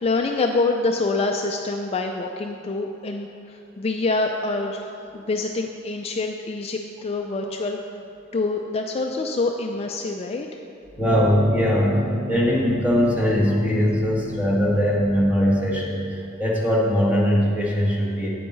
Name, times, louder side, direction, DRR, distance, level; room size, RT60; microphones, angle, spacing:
voice 1, 0.0-7.8 8.3-10.5, left 3 dB, 30° left, 3 dB, 0.4 m, -26 dB
voice 2, 11.0-18.3, equal, 10° right, -4 dB, 1.5 m, -21 dB
Piano, 11.0-16.1, equal, 50° right, 0.9 m, -34 dB
9.4 x 8.5 x 3.9 m, 2.6 s
head